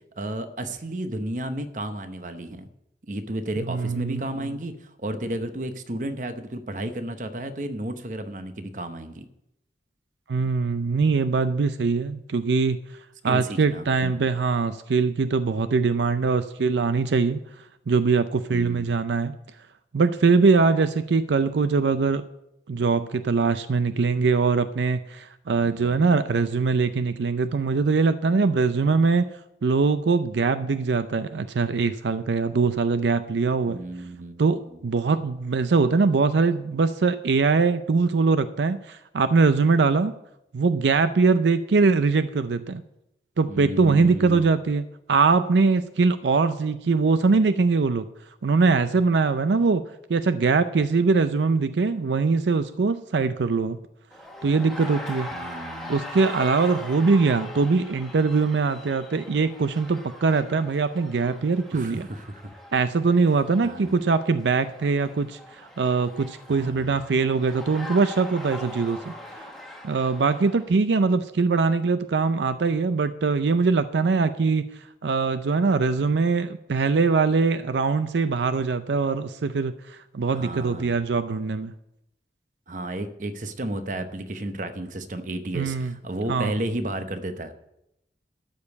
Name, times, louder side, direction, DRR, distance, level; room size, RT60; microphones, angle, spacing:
voice 1, 0.2-2.7 3.1-9.2 13.2-14.2 18.5-18.9 25.5-26.3 33.7-34.6 43.5-44.4 55.3-56.0 61.7-62.4 63.6-64.0 66.5-67.0 80.3-81.0 82.7-87.6, right 1 dB, 45° right, 8 dB, 0.9 m, -33 dB
voice 2, 3.7-4.2 10.3-12.8 13.2-17.4 17.9-19.4 19.9-22.2 22.7-29.3 29.6-33.8 34.4-40.1 40.5-42.8 43.4-48.0 48.4-49.8 50.1-53.8 54.4-55.3 55.9-62.1 62.7-69.5 69.8-74.6 75.0-81.7 85.5-85.9 86.3-86.5, right 4 dB, 85° right, 12 dB, 0.5 m, -22 dB
sound 1, 54.1-70.7, left 1 dB, ahead, 1.3 m, -41 dB
13.0 x 5.3 x 8.1 m, 0.84 s
head